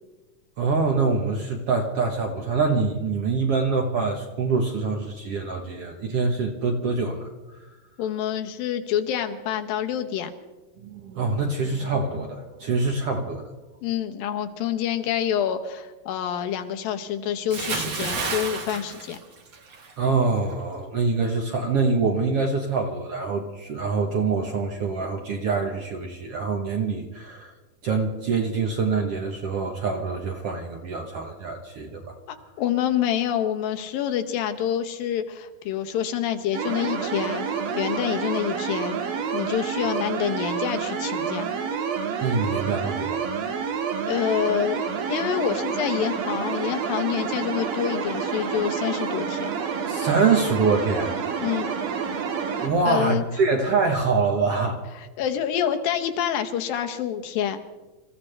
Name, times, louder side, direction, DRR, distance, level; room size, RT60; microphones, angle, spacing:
voice 1, 0.6-7.7 10.8-13.5 20.0-27.5 27.8-32.1 42.2-43.3 49.9-51.2 52.6-54.8, right 4 dB, 65° right, 2 dB, 1.5 m, -25 dB
voice 2, 8.0-10.3 13.8-19.2 32.3-37.4 37.8-39.0 39.3-41.5 44.1-44.8 45.1-49.5 51.4-51.7 52.8-53.2 55.2-57.6, left 9 dB, 85° left, 7 dB, 2.8 m, -27 dB
Bathtub (filling or washing) / Splash splatter, 17.5-19.9 20.2-20.5, right 4 dB, 45° right, 1.6 m, -30 dB
sound 1, 36.5-52.7, right 6 dB, 80° right, 3.3 m, -28 dB
27.0 x 15.0 x 3.3 m, 1.2 s
omnidirectional pair, 4.0 m